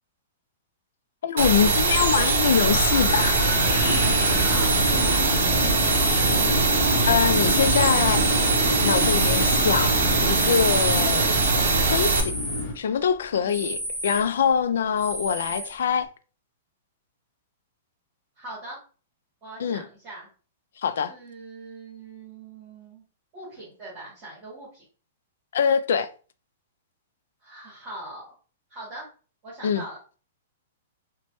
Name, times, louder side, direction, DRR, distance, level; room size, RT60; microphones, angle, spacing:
voice 1, 1.2-3.4 7.0-8.2 8.8-11.4 11.9-12.3 12.8-16.1 19.6-19.8 20.8-21.1 25.5-26.1 29.6-29.8, left 7 dB, 70° left, 0.3 m, -24 dB
sound 1, 1.4-12.2, right 3 dB, 65° right, 0.6 m, -22 dB
Wind, 2.4-12.7, left 2 dB, 45° left, 0.8 m, -28 dB
sound 2, 3.7-8.4 8.8-12.7 13.1-13.2 13.5-14.5 15.0-16.0, equal, 5° right, 1.2 m, -34 dB
voice 2, 4.5-6.0 13.3-13.6 18.4-18.8 19.4-20.3 21.1-23.0 23.3-24.8 27.4-28.2 28.7-29.1 29.4-30.0, right 2 dB, 25° right, 1.4 m, -41 dB
3.0 x 2.1 x 2.9 m
hypercardioid pair, 170°, 0 cm